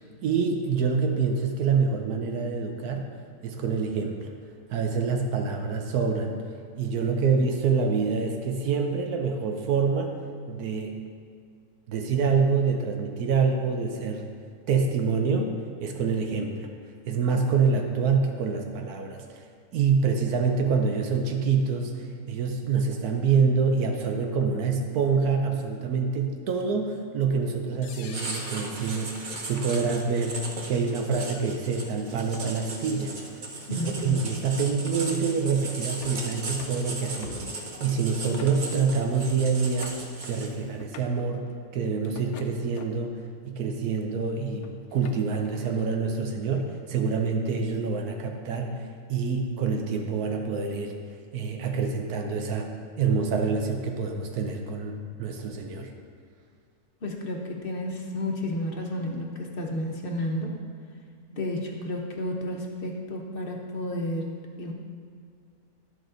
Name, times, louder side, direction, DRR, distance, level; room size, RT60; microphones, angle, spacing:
voice 1, 0.0-3.1 3.4-4.3 4.7-6.3 6.7-10.2 10.5-11.0 11.9-14.3 14.7-15.5 15.8-16.7 17.1-19.4 19.7-33.2 33.7-41.4 41.7-43.1 43.4-50.9 51.3-55.9, right 5 dB, 85° right, 3 dB, 1.2 m, -26 dB
sound 1, 26.6-26.7 27.8-28.7 29.5-29.7 30.1-30.2 31.2-31.5 32.1-32.6 33.8-33.9 34.6-35.1 35.7-36.2 36.6-36.9 37.2-37.7 38.4-38.9 39.2-39.3 39.6-40.3 40.8-41.3 42.0-43.1 43.7-44.0 44.6-46.0, left 6 dB, 75° left, 1.0 m, -46 dB
Writing, 28.1-40.7, right 2 dB, 40° right, 0.8 m, -37 dB
voice 2, 33.7-34.2 57.0-60.5 61.3-64.3 64.6-64.7, left 1 dB, 45° left, 1 dB, 0.9 m, -31 dB
11.5 x 5.2 x 3.9 m, 2.2 s
omnidirectional pair, 1.6 m